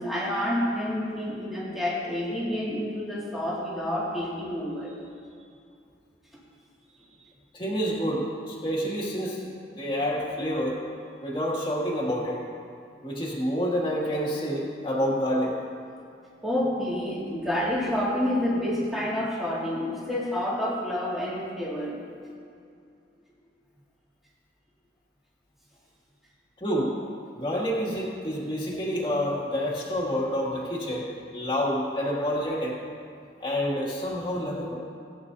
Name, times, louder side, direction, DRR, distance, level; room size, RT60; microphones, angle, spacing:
voice 1, 0.0-4.9 16.4-22.0, left 1 dB, ahead, -8 dB, 2.2 m, -28 dB
voice 2, 7.5-10.8 11.2-12.4 13.0-15.6 26.6-27.0 27.4-32.8 33.4-34.8, equal, 25° left, -5 dB, 2.3 m, -28 dB
19.5 x 9.4 x 2.7 m, 2.4 s
head